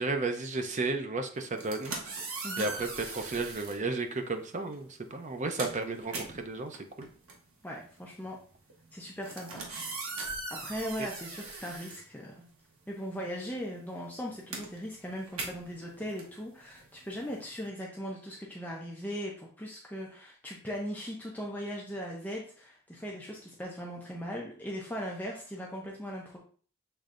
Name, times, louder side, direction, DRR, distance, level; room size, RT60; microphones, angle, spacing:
voice 1, 0.0-1.9 2.6-7.1, right 3 dB, 35° right, 6 dB, 0.5 m, -33 dB
sound 1, 1.4-3.8 4.7-4.9 5.2-12.7 13.0-17.7, right 3 dB, 85° right, 1.1 m, -41 dB
voice 2, 7.6-8.4 8.9-9.6 10.5-12.5 12.9-26.4, equal, 10° left, -2 dB, 0.6 m, -39 dB
6.6 x 3.2 x 2.5 m, 0.43 s
head